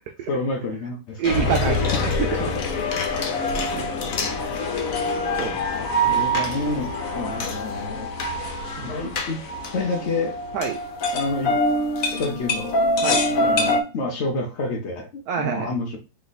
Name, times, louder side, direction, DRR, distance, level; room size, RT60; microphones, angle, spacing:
voice 1, 0.3-1.4 3.5-4.3 6.0-8.5 8.8-9.4 9.7-10.4 11.1-11.5 12.2-12.8 13.4-16.0, left 2 dB, 90° left, 0.6 m, -29 dB
sound 1, 1.2-13.8, left 1 dB, 60° left, 1.0 m, -25 dB
voice 2, 1.2-2.6 3.0-3.9 4.2-4.3 4.6-4.8 5.4-5.6 8.8-8.9 10.5-10.8 13.0-13.3 15.3-15.7, right 8 dB, 80° right, 0.8 m, -28 dB
sound 2, 1.3-3.4, left 4 dB, 45° right, 0.9 m, -28 dB
3.4 x 3.1 x 4.0 m
omnidirectional pair, 2.2 m